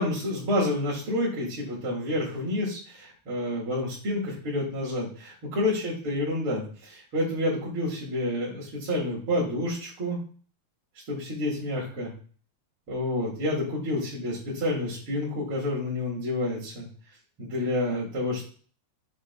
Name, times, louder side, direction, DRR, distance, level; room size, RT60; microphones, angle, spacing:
voice 1, 0.0-10.2 11.1-12.1 12.9-16.9 17.4-18.4, left 1 dB, 45° right, -7 dB, 2.2 m, -29 dB
7.3 x 3.7 x 3.4 m, 0.43 s
omnidirectional pair, 4.2 m